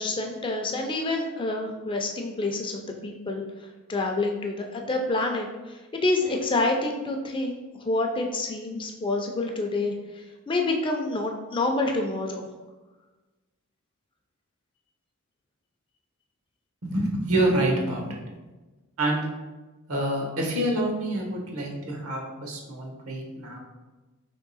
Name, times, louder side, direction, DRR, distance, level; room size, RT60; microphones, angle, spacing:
voice 1, 0.0-12.5, left 2 dB, 25° left, 3 dB, 0.4 m, -28 dB
voice 2, 16.8-18.2 19.0-19.3 19.9-23.6, right 1 dB, 75° right, 0 dB, 1.0 m, -27 dB
3.6 x 3.0 x 4.0 m, 1.2 s
head